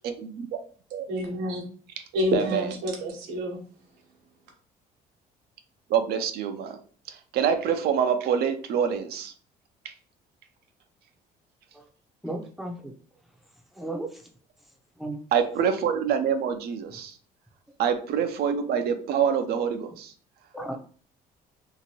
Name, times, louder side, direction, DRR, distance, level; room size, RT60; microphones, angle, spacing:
voice 1, 0.0-0.4 0.9-1.1 2.3-2.6 5.9-6.8 7.1-9.3 9.8-9.9 15.3-17.2 17.8-20.1, right 7 dB, 70° right, 7 dB, 0.5 m, -26 dB
voice 2, 1.1-1.6 2.1-3.6, equal, 90° right, 1 dB, 1.0 m, -28 dB
voice 3, 12.2-12.9 13.7-14.3 15.0-15.2 20.5-20.8, right 2 dB, ahead, 2 dB, 0.6 m, -34 dB
2.8 x 2.5 x 2.8 m, 0.42 s
cardioid pair, 110°, 17 cm